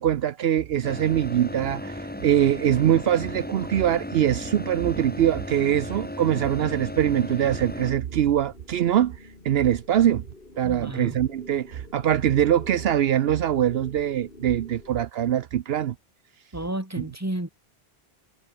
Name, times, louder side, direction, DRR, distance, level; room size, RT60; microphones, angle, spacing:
voice 1, 0.0-9.2 9.4-10.2 10.6-15.9 17.0-17.1, right 10 dB, 70° right, 0.9 m, -23 dB
sound 1, 0.8-7.9, left 1 dB, 10° left, 1.5 m, -35 dB
sound 2, 6.3-15.1, left 2 dB, 55° left, 3.6 m, -48 dB
voice 2, 10.6-11.2 16.5-17.5, right 1 dB, 15° right, 2.7 m, -31 dB
omnidirectional pair, 1.1 m